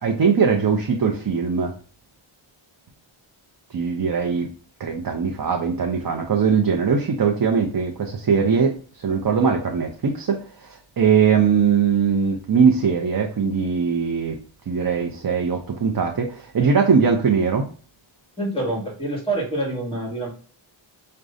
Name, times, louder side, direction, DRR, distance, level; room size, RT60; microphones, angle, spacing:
voice 1, 0.0-1.7 3.7-4.5 4.8-14.4 14.7-17.6, right 6 dB, 45° right, 2 dB, 0.6 m, -21 dB
voice 2, 18.4-20.3, right 2 dB, 10° left, -1 dB, 1.7 m, -26 dB
6.2 x 2.2 x 2.5 m, 0.41 s
wide cardioid pair, 75°, 50 cm